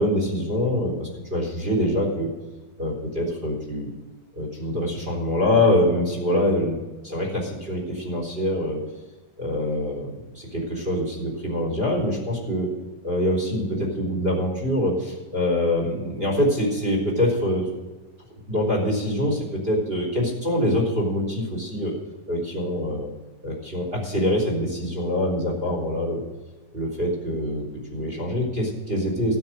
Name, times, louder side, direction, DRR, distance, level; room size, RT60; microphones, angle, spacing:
voice 1, 0.0-2.3 2.8-3.9 4.4-6.8 7.0-8.8 9.4-12.7 13.0-17.7 18.5-22.0 22.3-23.1 23.4-26.2 26.7-27.6 27.9-29.4, left 1 dB, 15° right, 1 dB, 3.7 m, -24 dB
13.0 x 9.9 x 6.5 m, 1.2 s
omnidirectional pair, 4.2 m